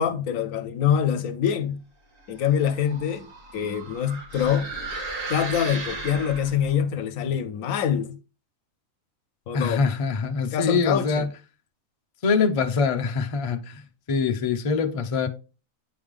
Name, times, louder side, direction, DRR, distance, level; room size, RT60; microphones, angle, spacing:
voice 1, 0.0-1.8 2.3-3.3 3.5-4.7 5.3-8.2 9.5-9.8 10.5-11.3, left 8 dB, 75° left, 1.0 m, -25 dB
sound 1, 2.3-6.8, right 3 dB, 70° right, 2.5 m, -36 dB
voice 2, 9.5-11.3 12.2-15.3, left 5 dB, 35° left, 0.6 m, -24 dB
9.5 x 3.4 x 3.5 m
omnidirectional pair, 1.4 m